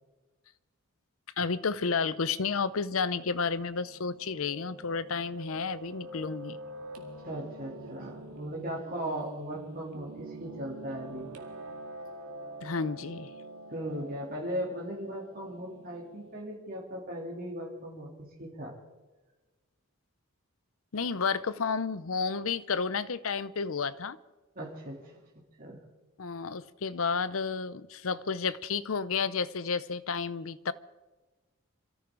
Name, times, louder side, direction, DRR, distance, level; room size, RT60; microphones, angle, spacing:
voice 1, 1.4-6.6 12.6-13.3 20.9-24.2 26.2-30.7, left 5 dB, 70° left, 0.7 m, -31 dB
Piano, 1.9-16.4, right 2 dB, 85° right, 2.0 m, -46 dB
voice 2, 7.2-11.3 13.7-18.7 24.5-25.2 25.6-25.8, equal, 40° right, 3.2 m, -38 dB
26.5 x 14.0 x 3.9 m
head